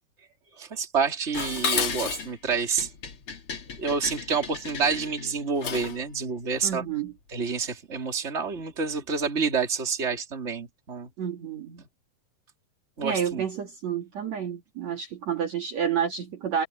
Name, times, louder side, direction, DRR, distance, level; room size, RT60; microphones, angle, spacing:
voice 1, 0.6-2.9 3.8-6.8 7.3-11.1 11.8-11.9 13.0-13.4, right 5 dB, 20° right, 3.0 m, -28 dB
Dishes pots and pans, 1.3-6.0, left 6 dB, 40° left, 2.5 m, -32 dB
voice 2, 6.6-7.1 11.2-11.8 13.0-16.7, right 8 dB, 55° right, 2.9 m, -30 dB
omnidirectional pair, 4.1 m